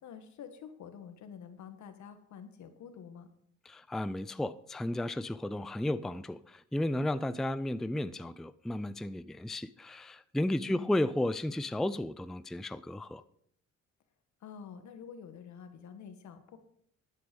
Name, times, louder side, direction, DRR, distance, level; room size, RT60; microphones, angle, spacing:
voice 1, 0.0-3.3 10.7-10.9 14.4-16.6, left 7 dB, 70° left, 1.6 m, -48 dB
voice 2, 3.7-13.2, left 1 dB, ahead, 0.4 m, -33 dB
11.5 x 9.5 x 5.3 m
cardioid pair, 90°, 30 cm